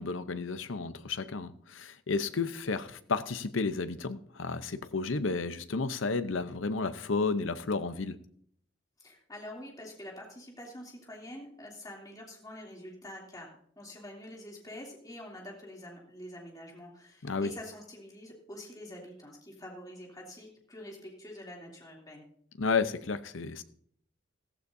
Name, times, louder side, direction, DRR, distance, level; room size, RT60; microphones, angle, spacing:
voice 1, 0.0-8.2 17.2-17.5 22.6-23.6, left 4 dB, 75° left, 0.8 m, -32 dB
voice 2, 9.0-13.5 13.8-22.2, left 1 dB, 20° left, 3.0 m, -46 dB
15.0 x 15.0 x 2.7 m
head